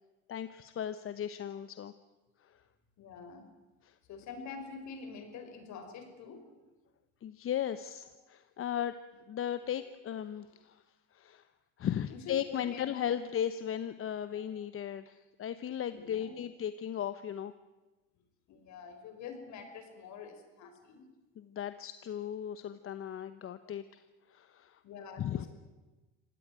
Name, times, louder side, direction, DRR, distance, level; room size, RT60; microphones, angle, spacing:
voice 1, 0.3-1.9 2.4-2.6 3.8-3.9 7.2-9.0 9.3-10.8 11.1-11.5 11.8-17.5 21.4-24.0 24.3-24.8 25.2-25.5, left 10 dB, 45° left, 12 dB, 1.1 m, -36 dB
voice 2, 3.0-3.5 4.1-6.5 12.1-13.0 14.4-14.5 15.9-16.4 18.5-21.1 24.8-25.5, left 5 dB, 60° left, 7 dB, 5.4 m, -46 dB
26.0 x 17.5 x 9.1 m, 1.2 s
supercardioid pair, 90°, 31 cm